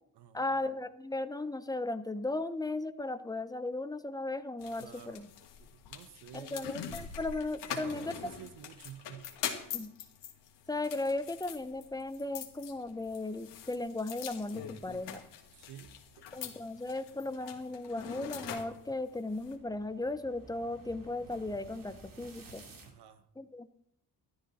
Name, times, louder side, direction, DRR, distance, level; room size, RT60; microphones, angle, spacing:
voice 1, 0.3-5.3 6.3-8.1 9.7-9.9 10.7-15.2 16.3-22.6 23.4-23.7, left 2 dB, 10° left, 11 dB, 0.8 m, -36 dB
sound 1, 4.6-19.5, left 8 dB, 90° left, 2.4 m, -44 dB
voice 2, 4.8-5.3 5.6-6.7 7.7-9.4 15.5-16.3 22.9-23.3, right 9 dB, 75° right, 12 dB, 1.2 m, -50 dB
sound 2, 15.3-22.9, right 3 dB, 55° right, 2.9 m, -56 dB
14.5 x 12.5 x 4.3 m, 0.75 s
cardioid pair, 125°, 41 cm